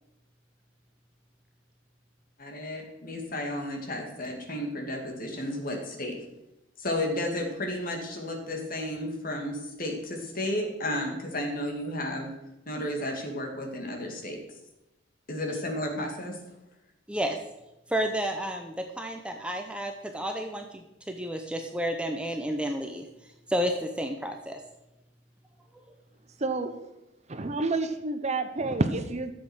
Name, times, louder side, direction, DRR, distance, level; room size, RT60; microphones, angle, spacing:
voice 1, 2.4-6.1 6.8-12.3 12.7-14.4 15.3-16.4, left 1 dB, 45° left, 2 dB, 2.4 m, -33 dB
voice 2, 17.9-23.1 23.5-24.6, equal, 5° right, 4 dB, 0.8 m, -31 dB
voice 3, 26.4-26.7 27.3-29.3, right 3 dB, 35° right, 8 dB, 0.8 m, -28 dB
12.0 x 7.7 x 6.3 m, 0.92 s
head